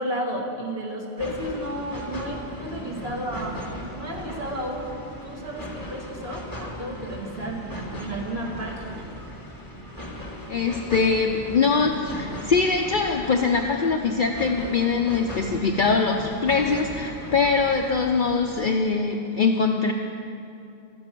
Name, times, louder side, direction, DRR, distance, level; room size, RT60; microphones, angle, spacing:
voice 1, 0.0-7.7 8.0-9.1, equal, 65° right, -2 dB, 2.7 m, -32 dB
sound 1, 1.2-18.7, equal, 20° left, 1.9 m, -37 dB
voice 2, 10.5-19.9, left 4 dB, 50° left, 2 dB, 0.9 m, -23 dB
15.5 x 13.0 x 6.1 m, 2.6 s
omnidirectional pair, 1.1 m